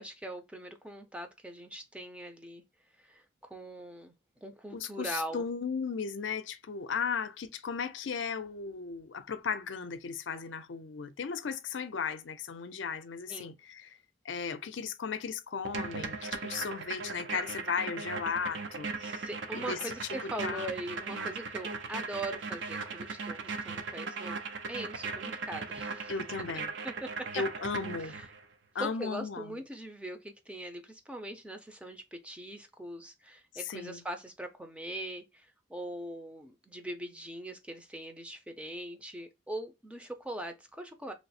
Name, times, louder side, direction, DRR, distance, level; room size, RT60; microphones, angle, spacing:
voice 1, 0.0-2.6 3.0-3.2 3.5-4.1 4.4-5.5 13.3-13.5 19.0-24.4 24.7-26.1 26.8-27.3 28.0-28.3 28.8-41.1, right 1 dB, 5° right, 0.5 m, -41 dB
voice 2, 4.7-14.0 14.2-19.3 19.5-19.9 20.4-20.7 21.1-21.3 26.1-26.7 27.3-28.2 28.7-29.6 33.5-34.0, left 5 dB, 70° left, 0.5 m, -36 dB
sound 1, 15.6-28.4, right 4 dB, 65° right, 0.5 m, -38 dB
3.0 x 2.0 x 4.1 m
head